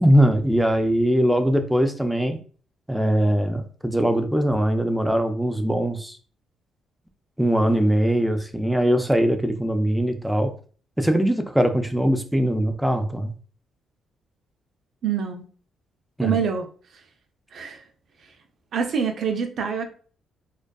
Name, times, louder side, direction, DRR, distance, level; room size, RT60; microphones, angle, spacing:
voice 1, 0.0-2.4 2.9-6.2 7.4-10.5 11.0-13.3 16.2-16.4, equal, 5° right, 7 dB, 0.4 m, -21 dB
voice 2, 15.0-15.4 16.2-16.7 17.5-17.8 18.7-19.9, right 7 dB, 60° right, 5 dB, 0.5 m, -25 dB
2.5 x 2.3 x 2.2 m, 0.42 s
cardioid pair, 90°, 0 cm